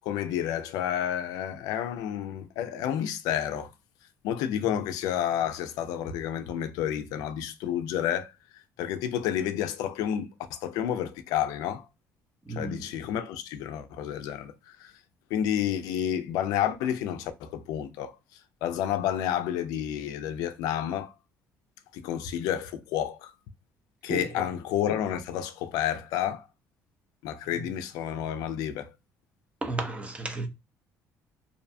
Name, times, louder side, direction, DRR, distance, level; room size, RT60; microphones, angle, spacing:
voice 1, 0.0-3.7 4.2-8.3 8.8-11.9 12.5-14.9 15.3-21.1 21.9-23.3 24.0-26.5 27.2-28.9, left 10 dB, 85° left, 0.3 m, -30 dB
voice 2, 12.5-12.9 24.1-24.3 29.6-30.5, right 2 dB, 20° right, 0.5 m, -33 dB
2.6 x 2.1 x 2.6 m
cardioid pair, 100°, 6 cm